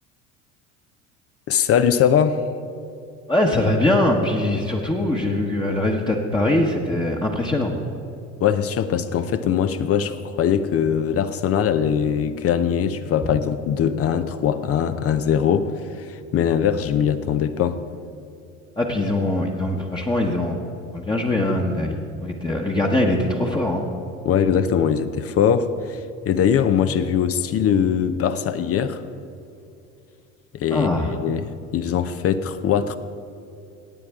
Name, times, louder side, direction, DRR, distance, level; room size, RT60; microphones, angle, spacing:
voice 1, 1.5-2.4 8.4-17.8 24.2-29.0 30.6-33.0, left 8 dB, 35° left, 11 dB, 0.6 m, -21 dB
voice 2, 3.3-7.7 18.8-20.6 20.9-23.8 30.7-31.2, left 1 dB, 10° left, -2 dB, 1.1 m, -22 dB
17.5 x 8.6 x 3.6 m, 2.6 s
hypercardioid pair, 70°, 39 cm